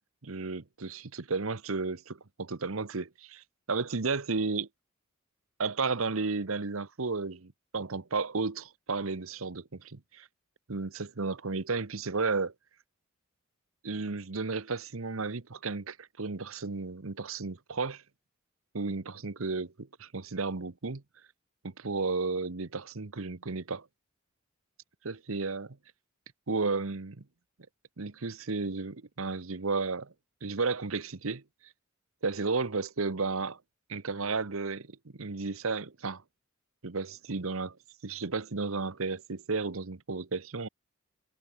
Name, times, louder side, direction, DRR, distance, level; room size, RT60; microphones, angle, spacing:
voice 1, 0.2-4.7 5.6-10.3 10.7-12.5 13.8-18.0 18.7-21.0 21.6-23.9 25.0-25.8 26.5-27.2 28.0-30.1 30.4-31.4 32.2-33.6 33.9-36.2 36.8-37.8 38.0-40.7, right 4 dB, 70° right, 1.1 m, -33 dB
head